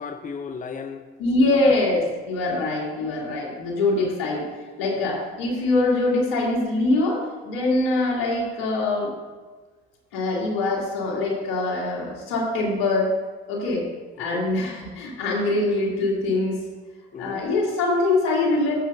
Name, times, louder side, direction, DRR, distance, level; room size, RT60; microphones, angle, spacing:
voice 1, 0.0-1.1 1.4-2.1 4.9-5.1 14.2-14.6 17.1-17.4, left 5 dB, 25° left, 8 dB, 0.7 m, -36 dB
voice 2, 1.2-4.4 4.8-9.1 10.1-13.1 13.5-13.9 14.2-16.6 17.2-18.7, left 2 dB, 75° left, -3 dB, 3.1 m, -23 dB
14.0 x 7.5 x 2.7 m, 1.4 s
hypercardioid pair, 60°, 29 cm